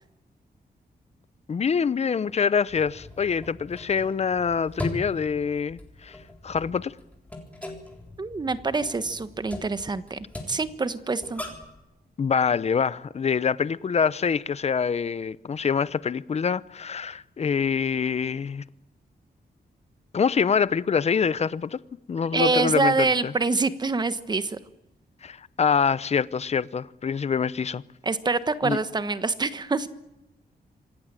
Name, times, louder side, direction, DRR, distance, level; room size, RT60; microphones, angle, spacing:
voice 1, 1.5-6.2 6.4-6.9 12.2-18.6 20.1-21.8 22.1-23.3 25.2-27.8 28.6-28.8, left 6 dB, 40° left, 0.8 m, -25 dB
sound 1, 2.7-11.8, left 1 dB, 10° left, 3.7 m, -40 dB
voice 2, 8.2-11.4 22.3-24.6 28.0-29.9, right 3 dB, 25° right, 1.3 m, -26 dB
26.5 x 17.5 x 9.0 m
wide cardioid pair, 180°, 17 cm